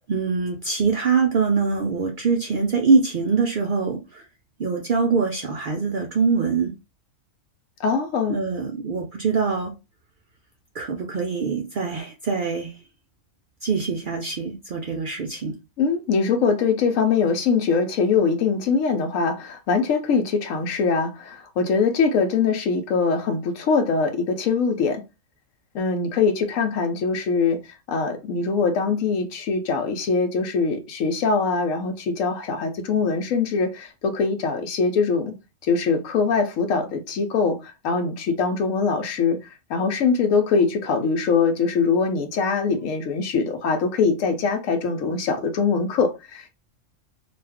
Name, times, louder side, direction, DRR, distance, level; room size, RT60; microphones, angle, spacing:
voice 1, 0.1-4.3 4.6-6.7 8.3-9.7 10.7-12.7 13.6-15.6, right 4 dB, 65° right, 0.5 m, -23 dB
voice 2, 7.8-8.3 15.8-25.0 25.7-27.6 27.9-35.3 35.6-46.5, left 5 dB, 80° left, 1.0 m, -22 dB
2.5 x 2.3 x 3.4 m
omnidirectional pair, 1.3 m